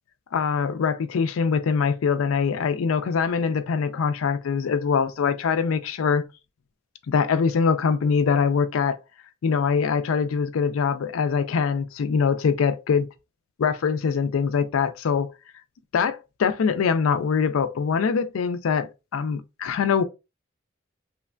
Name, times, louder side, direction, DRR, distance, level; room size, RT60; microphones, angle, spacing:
voice 1, 0.3-6.2 7.1-9.0 9.4-13.1 13.6-15.3 15.9-20.0, left 6 dB, 90° left, 0.4 m, -23 dB
3.1 x 2.1 x 2.4 m
head